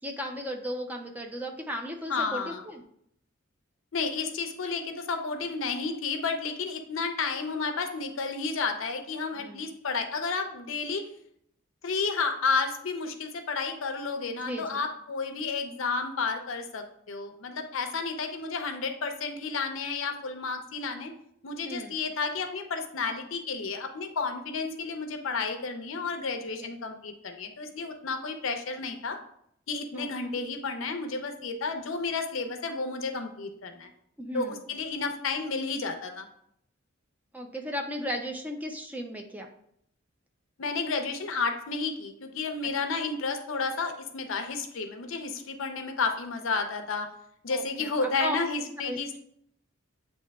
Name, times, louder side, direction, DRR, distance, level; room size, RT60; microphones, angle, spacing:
voice 1, 0.0-2.8 9.3-9.7 14.4-14.8 21.6-22.0 26.6-26.7 29.9-30.4 34.2-34.6 37.3-39.5 42.6-42.7 47.5-48.4 48.9-49.0, equal, 10° right, 2 dB, 0.4 m, -36 dB
voice 2, 2.1-2.6 3.9-11.0 11.8-21.1 21.4-29.2 29.7-33.9 34.3-36.3 40.6-47.1 47.4-49.2, left 4 dB, 75° left, 6 dB, 0.6 m, -31 dB
8.2 x 2.8 x 2.3 m, 0.72 s
head